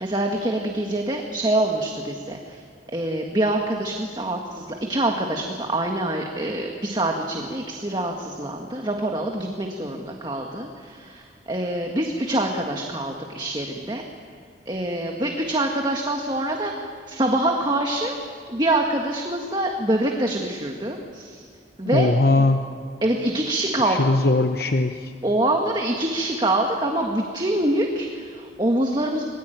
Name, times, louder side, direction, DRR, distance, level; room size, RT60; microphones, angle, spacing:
voice 1, 0.0-2.6 2.9-14.0 14.7-18.2 18.5-21.5 21.8-22.1 22.4-22.5 23.0-24.1 25.2-29.3, right 1 dB, 25° right, 2 dB, 1.8 m, -25 dB
voice 2, 21.9-22.7 23.9-25.1, left 2 dB, 55° left, 6 dB, 0.9 m, -20 dB
27.0 x 21.5 x 9.3 m, 2.1 s
head